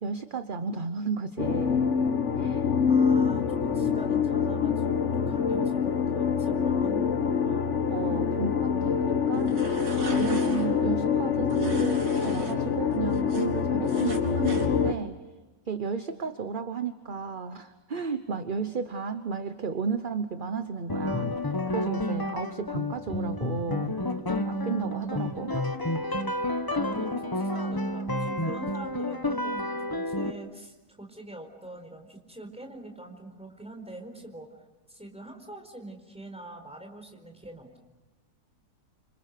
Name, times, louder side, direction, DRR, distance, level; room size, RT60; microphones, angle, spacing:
voice 1, 0.0-1.9 2.4-2.6 7.9-9.5 10.0-15.2 15.7-21.3 21.7-24.0 24.3-25.6, right 5 dB, 35° right, 9 dB, 1.0 m, -33 dB
sound 1, 1.4-14.9, left 6 dB, 50° left, 1.5 m, -25 dB
voice 2, 2.9-7.7 26.8-34.5 34.9-37.8, right 1 dB, 5° right, 2 dB, 4.4 m, -44 dB
sound 2, 9.3-10.7 11.5-12.5 12.9-14.7, right 3 dB, 75° right, 3.5 m, -41 dB
sound 3, 20.9-30.3, left 1 dB, 15° left, 1.0 m, -30 dB
30.0 x 26.5 x 6.7 m, 1.1 s
omnidirectional pair, 1.7 m